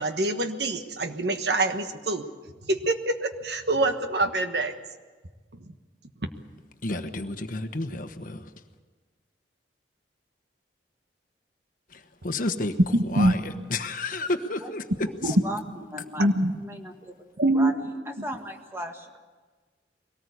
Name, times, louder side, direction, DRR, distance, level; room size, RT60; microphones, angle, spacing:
voice 1, 0.0-2.3 2.7-4.7 12.9-13.3 15.2-15.3 16.2-16.5 17.4-17.7, right 2 dB, 65° right, 7 dB, 1.4 m, -25 dB
voice 2, 6.8-8.5 11.9-12.8 13.0-15.4, left 2 dB, 50° left, 8 dB, 1.2 m, -31 dB
voice 3, 15.2-15.6 15.9-16.3 16.6-17.1 17.5-19.2, equal, 15° right, 4 dB, 1.7 m, -35 dB
22.5 x 18.5 x 8.3 m, 1.4 s
head